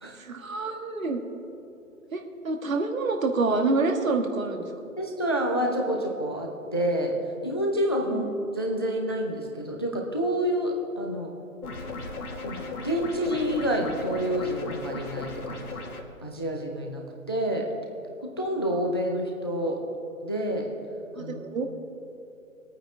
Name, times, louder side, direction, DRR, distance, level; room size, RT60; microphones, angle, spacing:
voice 1, 0.1-1.2 2.1-4.7 8.1-8.3 21.1-21.6, right 3 dB, 65° right, 4 dB, 1.7 m, -27 dB
voice 2, 5.0-7.2 7.4-11.3 12.4-15.7 16.2-17.0 17.3-17.7 18.4-19.8 20.2-20.7 21.2-21.4, equal, 20° left, 1 dB, 0.5 m, -28 dB
sound 1, 11.6-16.0, left 3 dB, 80° left, 1.8 m, -36 dB
21.0 x 9.0 x 3.6 m, 2.7 s
figure-of-eight pair, 150°, 43 cm